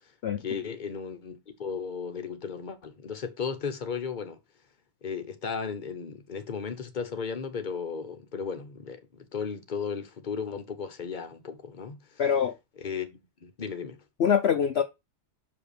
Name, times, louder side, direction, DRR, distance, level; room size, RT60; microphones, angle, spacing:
voice 1, 0.4-4.4 5.0-12.2 12.8-13.1 13.4-14.0, left 6 dB, 40° left, 0.8 m, -35 dB
voice 2, 12.2-12.5 14.2-14.8, left 8 dB, 80° left, 0.5 m, -24 dB
5.9 x 5.3 x 4.9 m
omnidirectional pair, 1.8 m